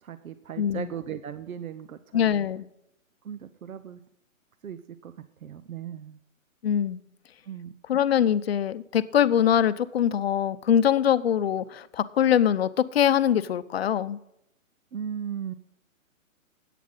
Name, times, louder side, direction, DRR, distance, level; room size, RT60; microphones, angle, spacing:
voice 1, 0.0-2.5 3.2-4.0 4.6-5.1 5.4-6.2 7.5-7.7 14.9-15.5, right 8 dB, 90° right, 12 dB, 1.0 m, -37 dB
voice 2, 0.6-0.9 2.1-2.7 6.6-7.0 7.9-14.2, left 9 dB, 50° left, 14 dB, 0.6 m, -23 dB
14.0 x 9.3 x 3.9 m, 0.79 s
hypercardioid pair, 165°, 41 cm